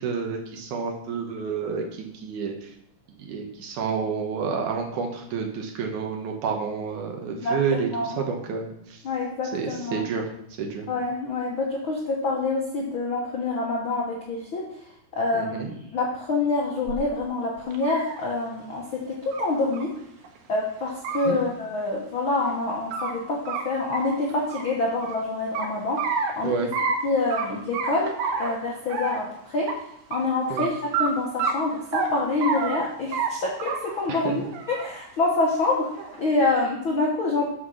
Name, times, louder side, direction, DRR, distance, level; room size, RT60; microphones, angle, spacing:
voice 1, 0.0-2.5 3.2-8.7 9.5-10.3 10.6-10.9 15.3-15.7 21.3-21.4 26.4-26.7 30.5-30.7 34.1-34.3, right 5 dB, 65° right, 2 dB, 2.5 m, -29 dB
voice 2, 7.3-8.2 9.0-10.0 10.9-14.7 15.1-15.7 15.9-19.9 20.5-26.1 26.4-26.5 27.0-29.7 30.1-35.9 36.2-37.5, left 3 dB, 60° left, -2 dB, 1.3 m, -26 dB
sound 1, 16.9-17.0 17.6-18.2 19.3-19.4 19.7-19.8 20.2-20.3 20.9-21.3 22.5-23.1 23.5-23.6 23.9-25.2 25.6-26.3 26.7-27.0 27.3-27.5 27.7-28.5 28.9-29.3 29.7-29.8 30.1-30.2 30.6-30.7 30.9-31.1 31.4-32.1 32.4-32.8 33.1-33.3 33.6-34.0 34.4-34.9 35.7-36.2, right 5 dB, 90° right, 3.0 m, -28 dB
9.0 x 5.7 x 6.4 m, 0.76 s
omnidirectional pair, 4.0 m